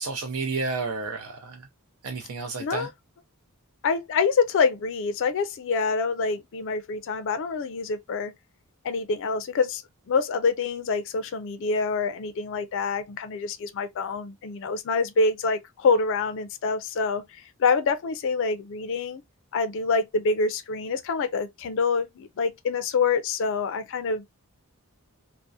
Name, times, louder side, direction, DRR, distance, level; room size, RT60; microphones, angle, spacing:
voice 1, 0.0-1.6 2.0-2.9, right 4 dB, 75° right, 0.5 m, -31 dB
voice 2, 2.6-2.9 3.8-8.3 8.8-9.8 10.1-17.2 17.6-19.2 19.5-24.3, left 4 dB, 60° left, 0.4 m, -26 dB
2.6 x 2.0 x 2.3 m
head